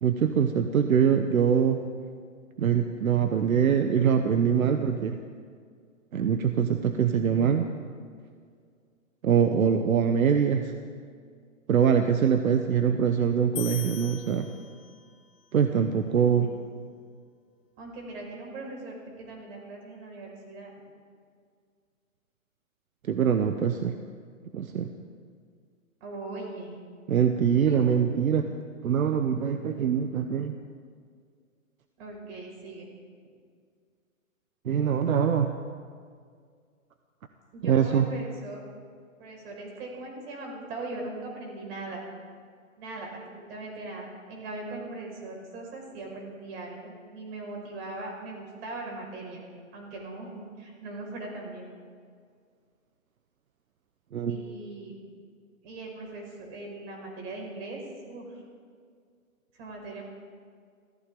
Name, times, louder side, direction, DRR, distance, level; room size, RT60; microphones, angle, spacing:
voice 1, 0.0-1.8 2.6-5.2 6.1-7.7 9.2-10.7 11.7-14.5 15.5-16.5 23.1-23.9 24.5-24.9 27.1-28.4 28.8-30.6 34.6-35.5 37.6-38.1 54.1-54.4, right 7 dB, 80° right, 7 dB, 1.1 m, -23 dB
sound 1, 13.6-15.2, left 13 dB, 30° left, 1.3 m, -40 dB
voice 2, 15.9-16.5 17.8-20.7 26.0-26.8 27.5-28.1 32.0-32.9 37.5-38.6 39.2-42.0 42.8-49.4 49.7-51.7 54.3-55.0 55.6-57.8 58.1-58.4 59.6-60.0, right 2 dB, 45° right, 0 dB, 5.4 m, -40 dB
23.5 x 15.0 x 3.8 m, 2.1 s
hypercardioid pair, 145°, 41 cm